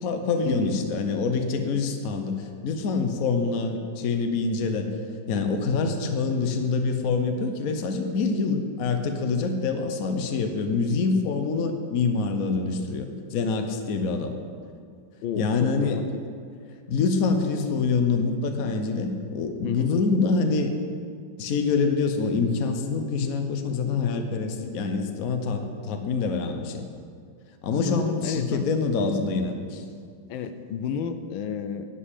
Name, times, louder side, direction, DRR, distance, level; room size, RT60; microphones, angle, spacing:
voice 1, 0.0-5.0 5.3-14.3 15.4-16.0 16.9-20.7 21.4-26.8 27.6-29.8, left 4 dB, 55° left, 5 dB, 1.2 m, -26 dB
voice 2, 15.2-16.2 19.6-19.9 27.8-28.6 30.3-31.9, left 6 dB, 90° left, 9 dB, 1.5 m, -31 dB
11.0 x 5.5 x 8.3 m, 2.2 s
omnidirectional pair, 2.1 m